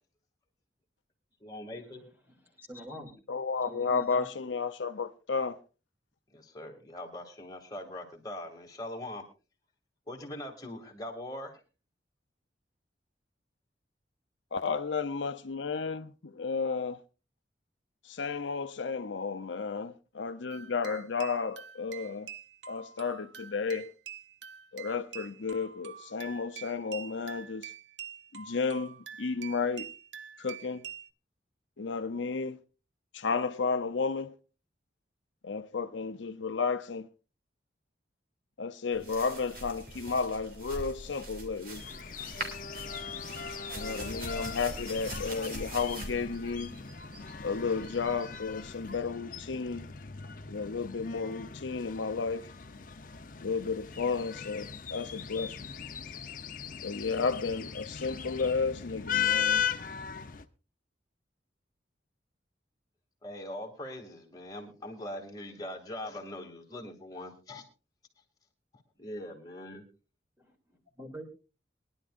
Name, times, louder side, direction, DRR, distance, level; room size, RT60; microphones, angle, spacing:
voice 1, 1.4-2.0 6.3-9.2 10.1-11.6 63.2-67.6 69.0-69.8, left 1 dB, 20° left, 2.6 m, -41 dB
voice 2, 2.7-3.1 3.6-4.3 70.4-71.3, equal, 10° right, 2.8 m, -45 dB
voice 3, 3.3-5.6 14.5-17.0 18.0-22.3 22.7-23.9 24.7-27.7 28.3-29.9 30.4-30.8 31.8-32.6 33.1-34.3 35.4-37.1 38.6-41.8 43.7-46.7 47.4-49.9 50.5-52.5 53.4-55.5 56.8-59.6, left 5 dB, 85° left, 0.7 m, -32 dB
Music Box Playing Berceuse - Brahms, 20.5-31.1, right 8 dB, 75° right, 0.7 m, -46 dB
sound 1, 38.9-48.9, right 1 dB, 50° right, 2.9 m, -44 dB
sound 2, 41.7-60.5, left 8 dB, 45° left, 0.8 m, -38 dB
22.5 x 11.5 x 2.5 m
head